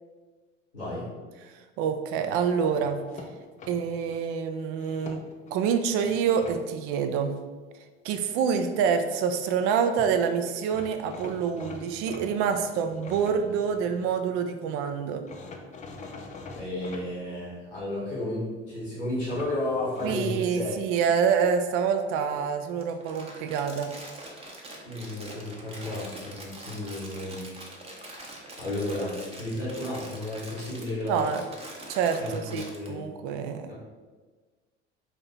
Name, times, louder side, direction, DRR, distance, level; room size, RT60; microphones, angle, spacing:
voice 1, 0.7-1.1 16.5-20.8 24.8-28.1 28.6-31.3 32.2-33.0 33.7-33.8, left 1 dB, 90° left, -12 dB, 1.4 m, -33 dB
voice 2, 1.8-3.0 3.7-5.2 5.5-7.3 8.0-15.2 20.0-23.9 31.1-31.4 31.9-33.7, right 6 dB, 40° right, 7 dB, 0.4 m, -27 dB
sound 1, 2.8-4.2 4.7-5.5 6.0-6.6 9.7-9.8 10.0-10.1 10.7-14.2 15.3-17.0 19.3-20.2, left 3 dB, 20° left, 0.5 m, -44 dB
Crumpling crinkling, 22.8-32.9, right 1 dB, 15° right, 0.8 m, -44 dB
4.1 x 2.8 x 4.2 m, 1.4 s
figure-of-eight pair, 65°, 35 cm